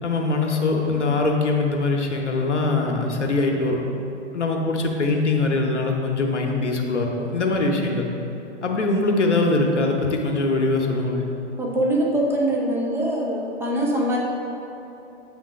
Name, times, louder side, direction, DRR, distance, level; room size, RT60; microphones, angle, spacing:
voice 1, 0.0-3.8 4.3-8.1 8.6-11.2, left 3 dB, 80° left, 1 dB, 0.9 m, -22 dB
voice 2, 11.6-14.2, right 1 dB, 5° right, -3 dB, 0.7 m, -23 dB
8.3 x 3.7 x 4.9 m, 2.9 s
figure-of-eight pair, 110°, 35 cm